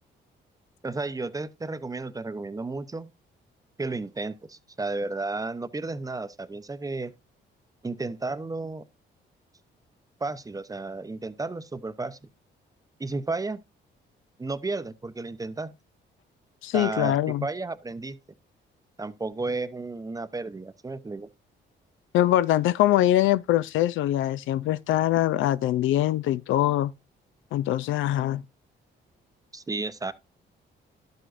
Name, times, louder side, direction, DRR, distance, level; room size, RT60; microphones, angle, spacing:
voice 1, 0.8-3.1 3.8-7.1 7.8-8.8 10.2-12.2 13.0-13.6 14.4-15.7 16.7-17.2 17.4-18.2 19.0-21.3 29.5-30.1, right 3 dB, 15° right, 0.7 m, -33 dB
voice 2, 16.6-17.5 22.1-26.9 27.5-28.4, left 13 dB, 80° left, 0.4 m, -23 dB
11.5 x 7.9 x 2.5 m
cardioid pair, 90°, 20 cm